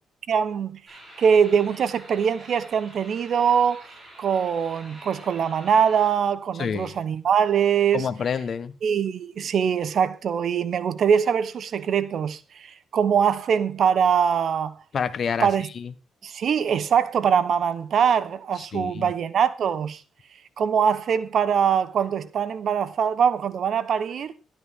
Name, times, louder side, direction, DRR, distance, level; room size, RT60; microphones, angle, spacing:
voice 1, 0.3-0.8 1.2-3.9 4.2-8.1 8.8-14.7 15.4-15.7 16.2-20.0 20.6-24.3, right 7 dB, 60° right, 1.0 m, -22 dB
sound 1, 0.9-6.1, right 1 dB, 20° right, 7.2 m, -47 dB
voice 2, 6.6-6.9 7.9-8.7 14.9-15.5 15.8-15.9 18.7-19.1, left 6 dB, 50° left, 1.1 m, -27 dB
12.0 x 12.0 x 3.7 m
cardioid pair, 90°, 0 cm